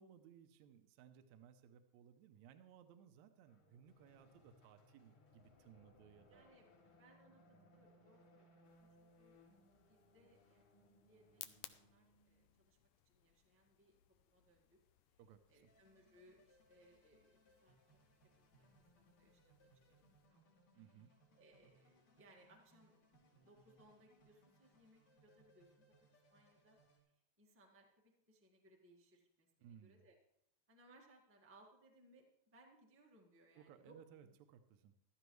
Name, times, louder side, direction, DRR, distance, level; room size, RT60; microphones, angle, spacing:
voice 1, 0.0-6.4 15.2-15.6 20.7-21.1 29.6-30.1 33.6-34.9, right 8 dB, 75° right, 8 dB, 2.0 m, -62 dB
sound 1, 3.4-12.6, left 1 dB, 45° left, 2.6 m, -68 dB
voice 2, 6.3-6.6 7.0-9.3 9.9-10.7 11.0-14.0 14.2-14.8 15.1-15.2 15.5-18.0 18.4-18.7 19.0-20.4 20.7-20.9 21.3-25.7 26.3-26.8 27.4-30.2 30.7-34.3, right 1 dB, 10° right, 0 dB, 0.5 m, -68 dB
sound 2, 8.6-20.3, left 14 dB, 80° left, 2.0 m, -63 dB
sound 3, 15.7-27.0, right 1 dB, 65° left, 4.1 m, -72 dB
14.5 x 12.0 x 3.1 m, 0.82 s
omnidirectional pair, 3.5 m